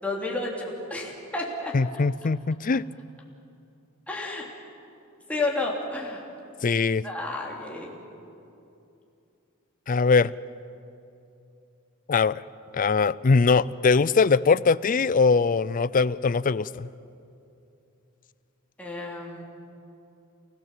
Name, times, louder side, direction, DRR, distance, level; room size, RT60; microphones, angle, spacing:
voice 1, 0.0-1.8 4.1-4.5 5.3-6.2 7.0-7.9 18.8-19.4, left 2 dB, 5° left, -3 dB, 3.4 m, -31 dB
voice 2, 1.7-2.8 6.6-7.0 9.9-10.3 12.1-12.4 12.7-16.9, left 4 dB, 40° left, 18 dB, 0.5 m, -21 dB
29.5 x 17.0 x 7.6 m, 2.7 s
head